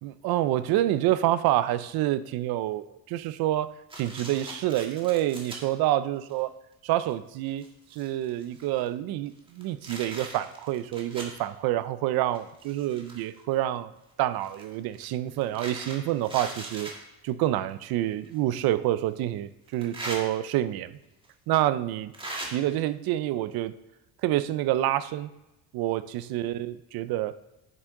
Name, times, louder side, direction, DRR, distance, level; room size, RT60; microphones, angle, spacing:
voice 1, 0.0-3.7 4.0-6.5 6.8-7.6 7.9-13.9 14.2-16.9 17.2-20.9 21.5-22.1 22.4-23.7 24.2-25.3 25.7-26.0 26.3-27.3, right 13 dB, 85° right, 14 dB, 0.6 m, -27 dB
sound 1, 3.9-5.6 6.3-6.4 7.1-7.2 7.5-8.9 9.4-11.4 12.3-13.4 14.4-17.0 18.2-18.3 19.7-20.2 21.2-21.3 22.1-22.5, right 2 dB, 15° right, 1.8 m, -40 dB
9.0 x 8.1 x 3.7 m, 0.95 s
cardioid pair, 130°, 36 cm